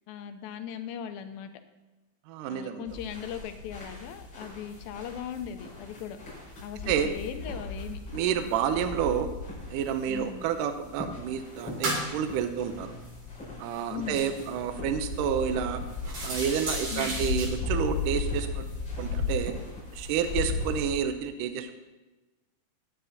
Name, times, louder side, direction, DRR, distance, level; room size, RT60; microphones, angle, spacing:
voice 1, 0.1-1.5 2.5-6.2 6.6-8.0 10.1-10.4 13.9-14.2 16.9-17.2, left 8 dB, 90° left, 7 dB, 2.5 m, -38 dB
voice 2, 2.3-2.9 6.9-7.1 8.1-9.3 9.7-12.9 13.6-15.8 16.2-18.7 19.0-19.5 19.9-21.7, right 8 dB, 75° right, 8 dB, 2.2 m, -29 dB
sound 1, 2.9-21.0, left 3 dB, 30° left, 5.6 m, -36 dB
sound 2, 9.6-9.7 10.1-10.9 11.3-15.0 15.4-15.5 15.9-17.5, right 1 dB, 55° right, 4.4 m, -37 dB
20.5 x 9.3 x 2.8 m, 1.1 s
omnidirectional pair, 4.1 m